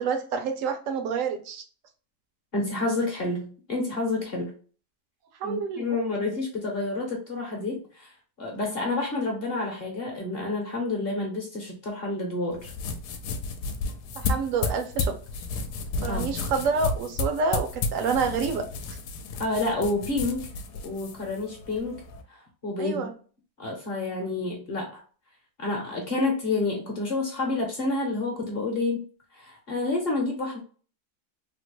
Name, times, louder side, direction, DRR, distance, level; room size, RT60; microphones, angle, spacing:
voice 1, 0.0-1.6 5.4-5.9 14.2-15.2 16.0-19.0 22.8-23.1, right 5 dB, 65° right, 6 dB, 0.8 m, -28 dB
voice 2, 2.5-4.5 5.4-8.1 8.4-12.7 16.0-16.3 19.4-20.5 20.8-22.0 22.3-22.4 22.6-23.1 23.6-25.0 25.6-29.0 29.3-30.6, left 2 dB, 45° left, 0 dB, 0.8 m, -29 dB
sound 1, 12.5-22.2, left 3 dB, 80° left, 1.1 m, -32 dB
3.6 x 2.1 x 2.9 m, 0.40 s
omnidirectional pair, 1.7 m